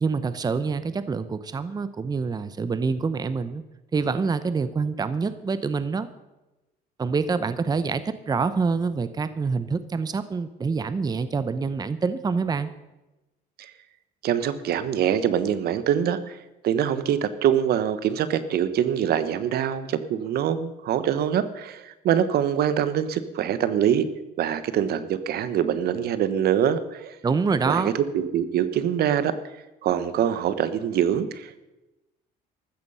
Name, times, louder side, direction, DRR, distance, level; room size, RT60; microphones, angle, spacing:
voice 1, 0.0-3.6 3.9-6.1 7.0-12.7 27.2-27.9, right 4 dB, 25° right, 13 dB, 0.8 m, -26 dB
voice 2, 14.2-16.4 16.6-24.1 24.4-27.1 27.6-29.3 29.8-31.7, right 9 dB, 70° right, 13 dB, 1.2 m, -24 dB
14.5 x 13.5 x 5.6 m, 1.0 s
cardioid pair, 110°, 17 cm